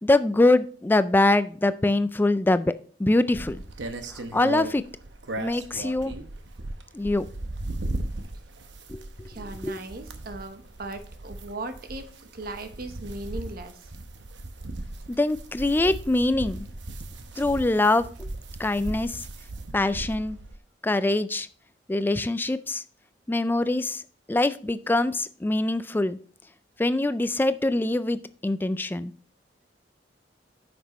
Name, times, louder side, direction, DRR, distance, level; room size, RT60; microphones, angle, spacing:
voice 1, 0.0-2.7 3.0-3.6 4.3-4.8 5.4-6.1 6.9-7.3 8.9-9.0 9.6-9.8 15.2-16.7 17.4-18.3 18.6-19.2 19.7-20.4 20.8-21.5 21.9-22.8 23.3-24.0 24.3-26.2 26.8-29.1, left 2 dB, 10° left, 13 dB, 0.3 m, -23 dB
sound 1, 3.3-20.6, right 2 dB, 75° right, 0.9 m, -37 dB
voice 2, 9.3-13.9, right 2 dB, 55° right, 8 dB, 0.9 m, -38 dB
9.3 x 6.2 x 3.0 m, 0.44 s
head